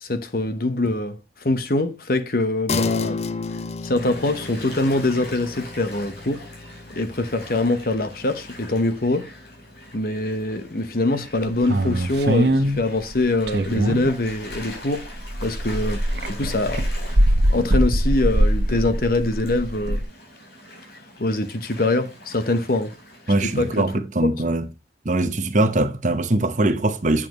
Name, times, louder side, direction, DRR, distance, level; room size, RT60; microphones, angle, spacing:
voice 1, 0.0-3.2 3.8-6.4 7.0-9.3 9.9-15.0 15.4-16.0 16.3-16.8 17.5-20.0 21.2-22.9 23.6-23.9, left 2 dB, 55° left, 1.0 m, -23 dB
sound 1, 2.7-12.4, left 4 dB, 35° left, 0.4 m, -34 dB
Gull seagull / Waves surf, 4.0-23.8, left 1 dB, 75° left, 4.5 m, -43 dB
sound 2, 11.6-14.7 15.0-20.0, right 1 dB, 75° right, 1.1 m, -22 dB
voice 2, 23.3-24.7 25.0-27.3, right 2 dB, 45° right, 0.9 m, -21 dB
8.5 x 7.3 x 3.0 m
head